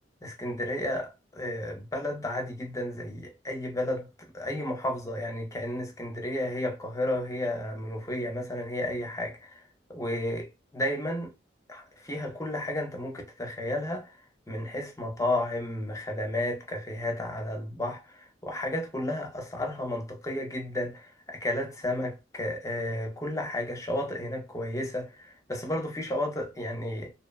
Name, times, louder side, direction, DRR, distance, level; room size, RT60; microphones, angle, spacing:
voice 1, 0.2-9.6 9.9-11.3 11.7-14.2 14.5-27.1, left 1 dB, 15° left, 0.5 m, -32 dB
2.8 x 2.1 x 2.2 m
head